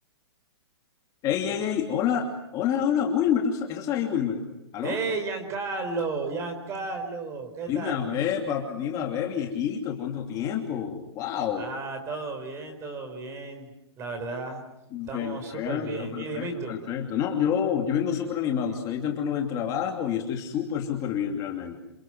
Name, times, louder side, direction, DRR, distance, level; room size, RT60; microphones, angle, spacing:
voice 1, 1.2-4.4 4.7-5.0 7.7-11.6 14.9-21.8, left 8 dB, 25° left, 2 dB, 2.8 m, -28 dB
voice 2, 4.8-8.0 11.6-13.7 14.0-14.6 15.1-16.8, right 3 dB, 20° right, 6 dB, 4.9 m, -33 dB
28.0 x 24.5 x 7.8 m, 0.85 s
hypercardioid pair, 155°, 14 cm